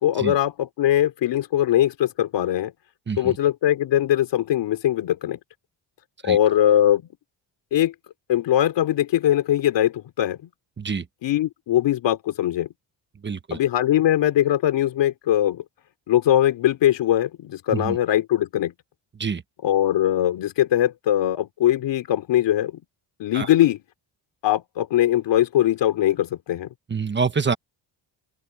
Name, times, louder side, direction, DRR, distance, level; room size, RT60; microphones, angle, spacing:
voice 1, 0.0-2.7 3.2-5.4 6.2-7.0 7.7-7.9 8.3-10.5 11.2-12.7 13.5-15.6 16.1-18.7 19.6-22.8 23.2-23.8 24.4-26.7, left 12 dB, 80° left, 3.1 m, -21 dB
voice 2, 13.2-13.6 17.7-18.0 19.2-19.4 23.3-23.5 26.9-27.6, right 5 dB, 25° right, 1.1 m, -26 dB
open air
cardioid pair, 130°, 42 cm